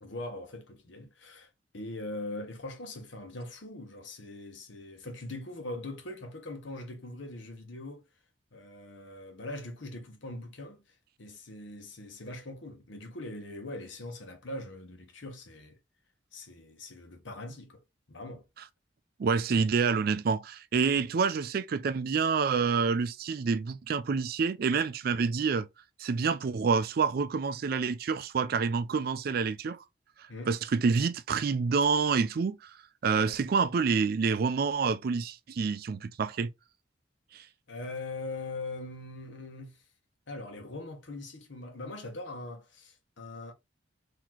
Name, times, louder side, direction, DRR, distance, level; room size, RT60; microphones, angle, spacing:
voice 1, 0.0-8.0 8.5-15.8 16.3-17.8 18.1-18.5 30.3-30.5 37.7-39.8 40.3-43.5, left 2 dB, 75° left, 1.0 m, -41 dB
voice 2, 19.2-25.7 26.0-29.8 30.5-32.7 33.0-36.5 37.3-37.4, right 5 dB, 50° right, 0.4 m, -27 dB
4.0 x 2.8 x 2.9 m
head